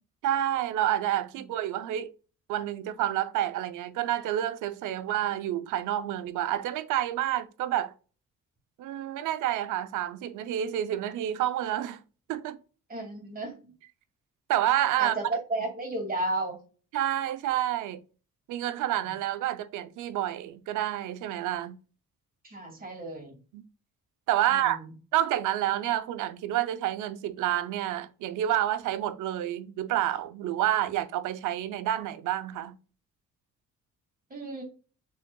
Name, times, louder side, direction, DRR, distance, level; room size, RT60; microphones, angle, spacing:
voice 1, 0.2-2.1 2.5-7.9 8.8-12.0 12.3-12.6 14.5-15.1 16.9-18.0 18.5-21.8 23.5-23.6 24.3-24.8 25.1-32.7, right 12 dB, 85° right, 0.5 m, -29 dB
voice 2, 12.9-13.5 15.0-16.6 22.4-23.3 24.5-24.8 34.3-34.6, right 2 dB, 30° right, 2.2 m, -33 dB
6.3 x 3.8 x 2.2 m
cardioid pair, 90°, 30 cm